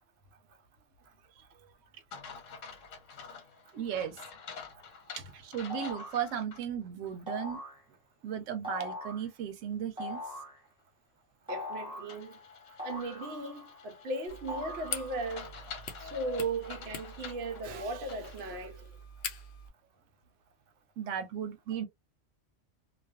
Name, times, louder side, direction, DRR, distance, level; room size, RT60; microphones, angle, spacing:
sound 1, 2.1-6.6 7.1-7.2 12.1-18.4, left 6 dB, 85° left, 1.1 m, -48 dB
voice 1, 3.7-4.2 5.2-7.6 8.2-10.2 21.0-21.9, right 9 dB, 90° right, 0.9 m, -36 dB
sound 2, 5.7-6.2 7.3-7.8 8.6-9.3 10.0-10.6 11.5-12.2 12.8-13.7 14.5-15.3, left 2 dB, 5° right, 0.7 m, -41 dB
voice 2, 11.5-12.4 12.8-15.5 16.0-18.8, right 2 dB, 60° right, 0.9 m, -37 dB
sound 3, 14.3-19.7, left 4 dB, 60° left, 0.7 m, -44 dB
2.4 x 2.2 x 2.3 m
omnidirectional pair, 1.3 m